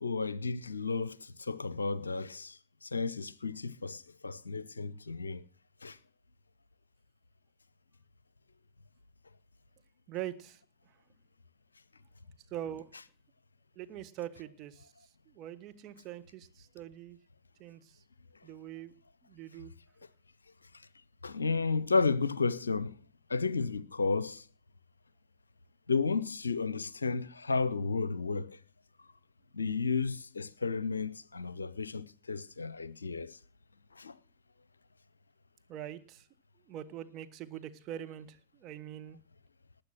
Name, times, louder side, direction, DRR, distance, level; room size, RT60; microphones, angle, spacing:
voice 1, 0.0-5.4 5.8-6.0 21.2-22.9 23.3-24.4 25.9-28.6 29.5-33.4 34.0-34.1, left 4 dB, 75° left, 0.6 m, -32 dB
voice 2, 10.1-10.6 12.5-12.9 13.7-14.9 15.3-17.2 17.6-18.0 18.4-18.9 19.2-19.7 35.7-36.3 36.7-39.2, right 11 dB, 35° right, 1.5 m, -43 dB
19.5 x 8.9 x 6.1 m
figure-of-eight pair, 90°, 0 cm